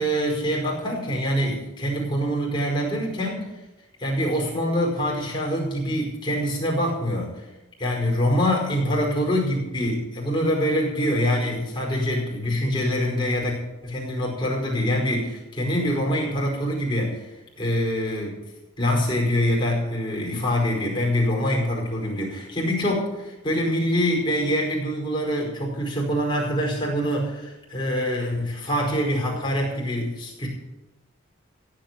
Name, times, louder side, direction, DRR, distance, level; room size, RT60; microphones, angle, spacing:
voice 1, 0.0-3.5 4.0-7.5 7.8-13.6 13.8-18.4 18.8-30.5, equal, 25° left, -2 dB, 5.0 m, -25 dB
15.5 x 8.6 x 7.6 m, 0.99 s
head